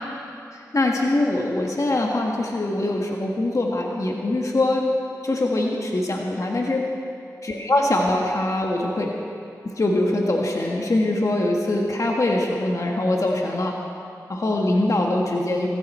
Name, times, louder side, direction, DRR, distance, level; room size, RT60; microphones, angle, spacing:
voice 1, 0.5-4.9 5.2-6.9 7.5-9.1 9.6-13.7 14.3-15.7, left 2 dB, 50° left, 0 dB, 1.7 m, -23 dB
19.0 x 15.0 x 4.4 m, 2.6 s
cardioid pair, 45°, 7 cm